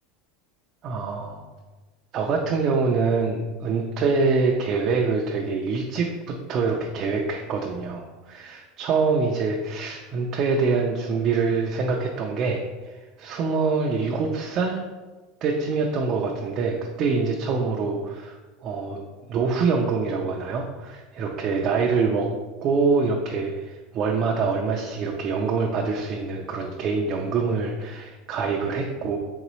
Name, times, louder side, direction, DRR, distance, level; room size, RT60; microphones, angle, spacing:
voice 1, 0.8-1.4 2.1-14.8 15.4-18.4 18.6-19.0 19.3-22.3 22.6-29.2, right 4 dB, 35° right, 0 dB, 0.4 m, -25 dB
3.9 x 3.7 x 3.0 m, 1.3 s
supercardioid pair, 160°, 0 cm